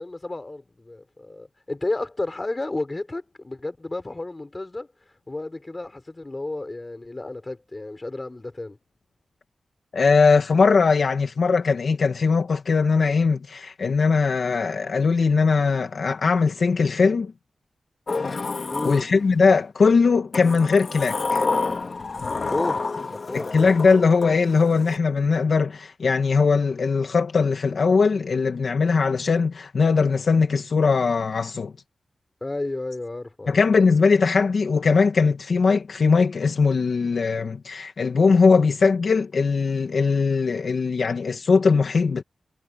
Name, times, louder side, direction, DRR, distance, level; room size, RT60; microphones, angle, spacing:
voice 1, 0.0-4.9 5.3-8.8 18.7-19.0 22.5-23.7 32.4-33.6, left 2 dB, 20° left, 4.9 m, -32 dB
voice 2, 9.9-17.3 18.8-21.4 23.3-31.7 33.5-42.2, left 4 dB, 60° left, 1.4 m, -20 dB
Sliding door, 18.1-19.6 20.3-25.0, left 4 dB, 40° left, 2.0 m, -29 dB
wide cardioid pair, 170°, 0 cm